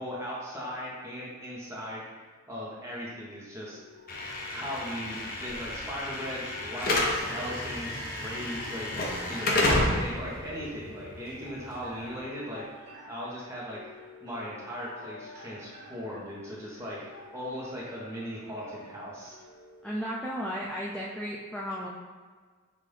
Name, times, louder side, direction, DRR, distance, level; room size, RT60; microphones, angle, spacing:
voice 1, 0.0-2.0 2.5-3.8 4.5-12.6 13.1-13.8 14.2-19.4, equal, 15° right, -6 dB, 1.0 m, -38 dB
sound 1, 3.7-20.7, left 2 dB, 60° right, 1.5 m, -49 dB
Slam / Alarm, 4.1-12.2, left 1 dB, 45° left, 0.6 m, -31 dB
voice 2, 19.8-21.9, equal, 5° left, -5 dB, 0.3 m, -34 dB
5.5 x 2.5 x 3.3 m, 1.5 s
head